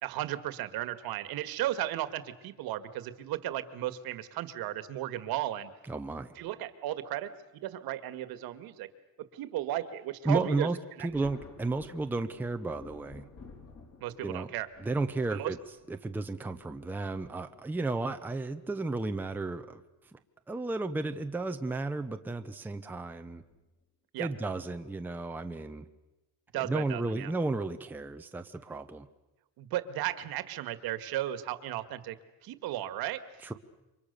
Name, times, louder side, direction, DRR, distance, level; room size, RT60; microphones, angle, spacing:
voice 1, 0.0-5.7 6.4-7.3 7.6-8.9 9.3-10.7 11.0-11.1 14.0-14.7 15.3-15.5 24.1-24.3 26.5-27.3 29.6-32.2 32.4-33.2, right 13 dB, 65° right, 12 dB, 1.8 m, -35 dB
voice 2, 5.9-6.3 10.2-13.3 14.2-14.5 14.8-15.6 15.9-19.8 20.1-20.2 20.5-23.4 24.2-25.9 26.5-29.1 33.4-33.5, right 3 dB, 5° right, 7 dB, 0.8 m, -33 dB
Thunder, 11.1-18.1 19.1-19.2 20.7-21.0 21.3-21.4 23.4-23.6 24.3-24.6, left 4 dB, 40° left, 4.2 m, -54 dB
28.5 x 25.0 x 6.8 m, 1.0 s
cardioid pair, 165°, 39 cm